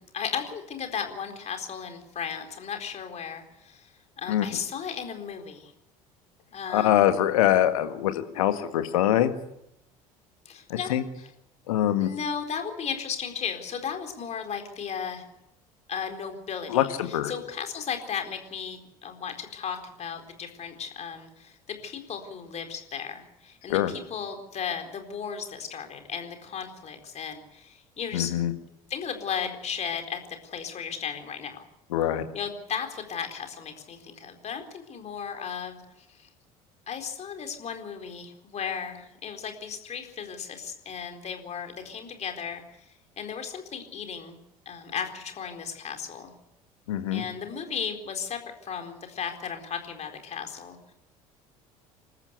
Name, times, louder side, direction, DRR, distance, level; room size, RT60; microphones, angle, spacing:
voice 1, 0.0-3.9 4.2-5.7 6.5-7.0 10.4-10.9 11.2-11.3 12.0-15.2 15.9-21.6 21.8-28.3 28.9-31.7 32.3-36.3 36.9-42.9 43.2-44.4 44.7-46.3 47.1-50.9, left 7 dB, 35° left, 5 dB, 4.2 m, -35 dB
voice 2, 6.7-9.3 10.7-11.0 11.7-12.1 16.7-17.3 23.7-23.9 28.1-28.5 31.9-32.3 46.9-47.2, left 12 dB, 65° left, 9 dB, 1.8 m, -23 dB
26.5 x 14.5 x 8.2 m, 0.83 s
figure-of-eight pair, 60°, 19 cm